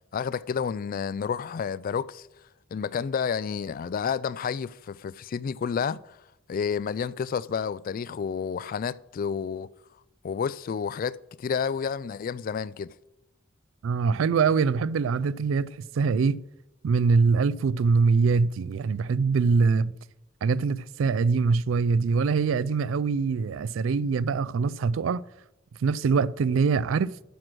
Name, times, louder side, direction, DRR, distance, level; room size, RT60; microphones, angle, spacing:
voice 1, 0.1-2.3 2.7-6.1 6.5-9.7 10.2-12.9, left 6 dB, 45° left, 0.3 m, -30 dB
voice 2, 13.8-16.4 16.8-19.9 20.4-25.2 25.8-27.1, right 5 dB, 70° right, 0.4 m, -23 dB
12.5 x 6.1 x 6.1 m
head